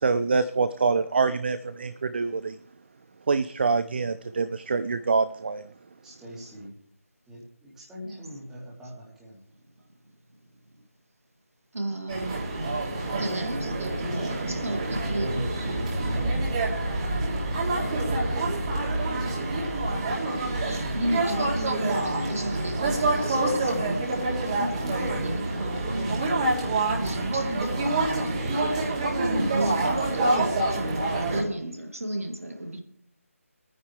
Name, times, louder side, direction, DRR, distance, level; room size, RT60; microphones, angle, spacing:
voice 1, 0.0-2.6 3.3-5.6, right 4 dB, 45° right, 0.5 m, -25 dB
voice 2, 6.0-6.7 7.3-9.4 14.0-18.7, equal, 5° right, 2.8 m, -41 dB
voice 3, 8.0-8.4 11.7-12.4 13.1-15.5 19.8-20.4 20.6-26.5 27.0-28.9 29.4-32.8, right 1 dB, 70° right, 2.1 m, -34 dB
sound 1, 12.1-31.4, right 2 dB, 25° right, 2.9 m, -27 dB
24.0 x 9.7 x 3.3 m
figure-of-eight pair, 160°, 8 cm